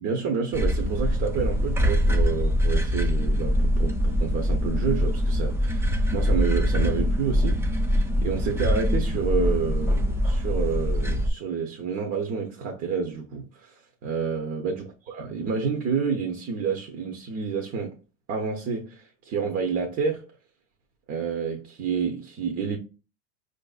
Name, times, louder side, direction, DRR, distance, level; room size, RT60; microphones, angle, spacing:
voice 1, 0.0-7.7 7.9-18.0 18.3-20.3 21.1-22.8, right 5 dB, 40° right, 0.7 m, -29 dB
sound 1, 0.5-11.3, equal, 5° right, 0.5 m, -23 dB
4.6 x 2.6 x 2.3 m
supercardioid pair, 110°, 36 cm